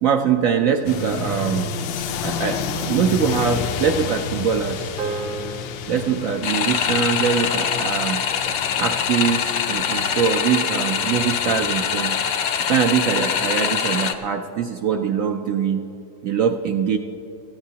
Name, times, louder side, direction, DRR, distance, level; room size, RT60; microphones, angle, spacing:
voice 1, 0.0-1.7 2.2-4.9 5.9-8.2 8.8-12.2 12.7-15.8 16.2-17.0, right 7 dB, 80° right, 5 dB, 0.7 m, -22 dB
sound 1, 0.8-14.1, left 5 dB, 80° left, 1.3 m, -31 dB
sound 2, 5.0-9.5, right 5 dB, 60° right, 1.1 m, -37 dB
sound 3, 6.4-14.1, left 8 dB, 60° left, 1.0 m, -23 dB
22.0 x 14.5 x 2.8 m, 3.0 s
omnidirectional pair, 2.0 m